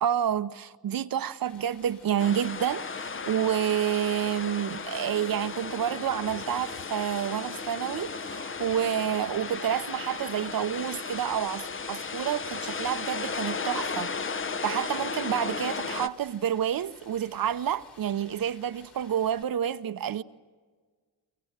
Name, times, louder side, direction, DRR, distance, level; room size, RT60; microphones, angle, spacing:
voice 1, 0.0-14.1 14.6-20.2, right 9 dB, 50° right, 0.9 m, -29 dB
Stream, 1.4-19.4, left 4 dB, 60° left, 2.8 m, -56 dB
sound 1, 2.2-16.1, left 5 dB, 30° left, 0.9 m, -35 dB
23.5 x 23.0 x 8.9 m
hypercardioid pair, 40°, 44 cm